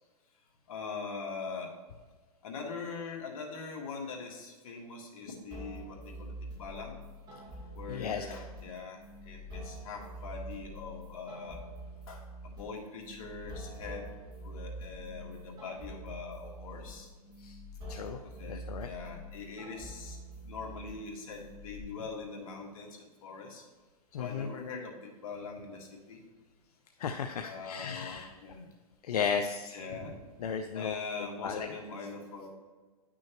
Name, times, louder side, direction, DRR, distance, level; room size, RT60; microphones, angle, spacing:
voice 1, 0.7-1.7 2.4-7.0 7.7-11.6 12.1-14.1 14.4-17.1 18.2-20.2 20.4-23.6 24.2-26.2 27.4-28.7 29.3-30.2 30.7-32.5, left 4 dB, 65° left, 0 dB, 1.8 m, -42 dB
sound 1, 5.5-21.8, right 1 dB, 20° right, 2.0 m, -46 dB
voice 2, 7.9-8.2 17.4-17.6 17.9-18.2 18.5-18.9 24.1-24.5 27.0-28.3 29.0-29.8 30.4-30.9 31.4-31.7, left 7 dB, 85° left, 6 dB, 0.6 m, -34 dB
10.0 x 6.2 x 3.0 m, 1.4 s
hypercardioid pair, 130°, 19 cm